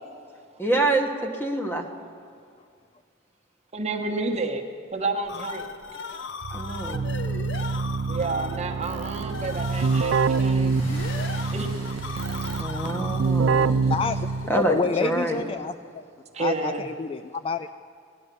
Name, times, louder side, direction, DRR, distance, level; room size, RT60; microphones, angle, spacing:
voice 1, 0.6-1.9 6.5-7.1 12.5-13.8 14.5-15.4, right 2 dB, 10° left, 3 dB, 1.2 m, -26 dB
voice 2, 3.7-5.8 8.1-10.8 11.5-11.7 16.3-16.8, right 3 dB, 35° right, 4 dB, 1.1 m, -30 dB
sound 1, 5.0-13.5, left 4 dB, 70° left, 0.7 m, -37 dB
Keyboard (musical), 6.4-14.7, right 4 dB, 70° right, 0.4 m, -26 dB
sound 2, 9.1-15.4, left 1 dB, 50° left, 4.3 m, -45 dB
voice 3, 13.9-14.3 14.5-16.0 16.4-17.7, left 4 dB, 30° left, 9 dB, 0.3 m, -28 dB
17.5 x 10.5 x 6.8 m, 2.2 s
head